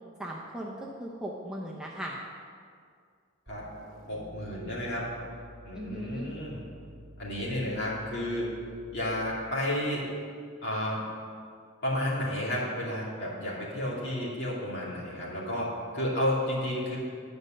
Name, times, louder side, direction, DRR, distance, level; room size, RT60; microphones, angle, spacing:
voice 1, 0.2-2.2 5.7-6.3, right 1 dB, 5° right, -3 dB, 0.7 m, -38 dB
sound 1, 3.5-9.6, right 1 dB, 40° right, 1.2 m, -50 dB
voice 2, 4.1-5.1 5.6-6.6 7.2-8.5 8.9-10.0 10.6-11.0 11.8-17.0, left 1 dB, 50° left, -6 dB, 2.7 m, -31 dB
9.6 x 5.2 x 7.7 m, 2.2 s
head